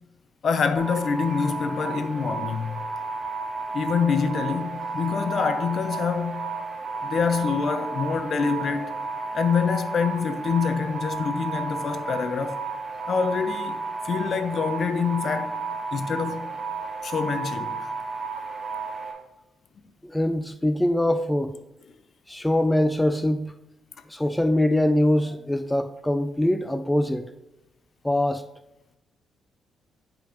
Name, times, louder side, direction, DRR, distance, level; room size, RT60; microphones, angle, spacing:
voice 1, 0.4-2.8 3.7-6.5 7.0-8.9 9.3-12.6 13.1-15.6 15.9-16.5 17.0-17.7, left 5 dB, 55° left, 0.6 m, -26 dB
sound 1, 0.8-19.1, right 4 dB, 40° right, 2.2 m, -32 dB
voice 2, 20.0-21.5 22.3-23.5 24.1-27.3 28.0-28.4, left 1 dB, 5° left, 0.3 m, -23 dB
10.0 x 5.1 x 3.0 m
cardioid pair, 90°, 0 cm